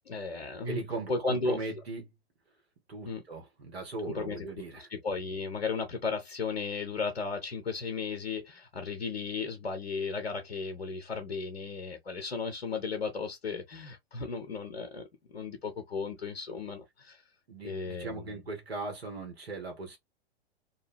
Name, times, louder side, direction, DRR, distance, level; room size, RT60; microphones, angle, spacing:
voice 1, 0.1-0.8 1.1-1.6 3.1-3.2 4.1-15.0 15.3-17.2 17.6-18.4, left 4 dB, 80° left, 0.6 m, -35 dB
voice 2, 0.6-2.1 2.9-4.9 17.5-20.0, right 3 dB, 75° right, 1.1 m, -39 dB
2.5 x 2.2 x 3.2 m
figure-of-eight pair, 105°, 32 cm